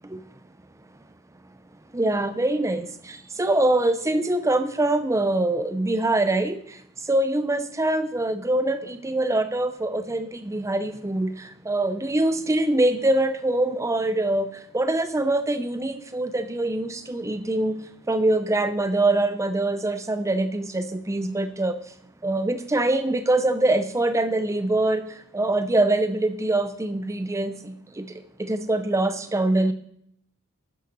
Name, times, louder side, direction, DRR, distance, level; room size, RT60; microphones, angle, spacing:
voice 1, 1.9-21.8 22.2-29.7, right 2 dB, 15° right, 10 dB, 0.5 m, -24 dB
10.0 x 5.7 x 6.0 m, 0.73 s
head